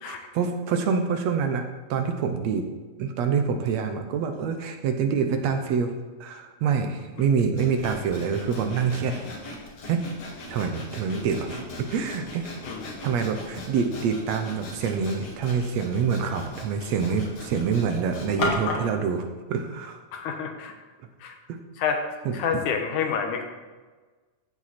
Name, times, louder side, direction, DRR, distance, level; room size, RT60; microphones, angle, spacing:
voice 1, 0.1-2.6 3.0-5.9 6.2-9.3 9.9-10.0 10.5-12.5 13.0-20.0 22.3-22.6, right 6 dB, 70° right, 6 dB, 1.9 m, -26 dB
Sawing, 7.6-18.9, left 2 dB, 55° left, 2.9 m, -37 dB
voice 2, 12.7-13.1 20.1-20.7 21.2-21.3 21.8-22.0 22.3-23.4, left 6 dB, 85° left, 4 dB, 2.7 m, -28 dB
15.0 x 7.7 x 4.3 m, 1.3 s
omnidirectional pair, 3.5 m